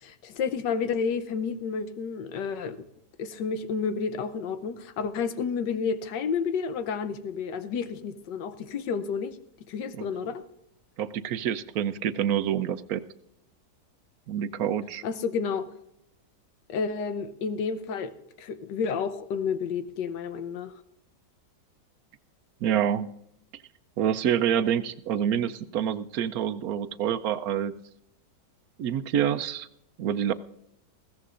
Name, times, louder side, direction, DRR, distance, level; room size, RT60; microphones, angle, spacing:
voice 1, 0.0-2.8 3.2-9.4 9.7-10.4 15.0-15.7 16.7-18.1 18.4-20.7, left 6 dB, 85° left, 10 dB, 1.5 m, -30 dB
voice 2, 11.0-13.0 14.3-15.0 22.6-23.1 24.0-27.7 28.8-29.7 30.0-30.3, right 9 dB, 65° right, 13 dB, 1.0 m, -27 dB
21.0 x 16.0 x 2.5 m, 0.81 s
omnidirectional pair, 1.8 m